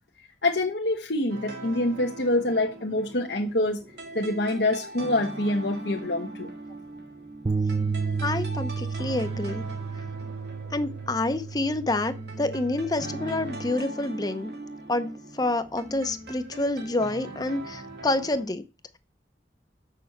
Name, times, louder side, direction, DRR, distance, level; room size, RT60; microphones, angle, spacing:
voice 1, 0.4-3.8 4.1-6.5, left 1 dB, 80° left, 1.3 m, -26 dB
sound 1, 1.3-18.4, right 2 dB, 70° right, 2.1 m, -41 dB
sound 2, 7.5-13.7, right 4 dB, 30° right, 0.5 m, -32 dB
voice 2, 8.2-9.6 10.7-14.5 14.9-18.6, left 2 dB, 20° left, 0.7 m, -28 dB
6.8 x 6.5 x 7.8 m
head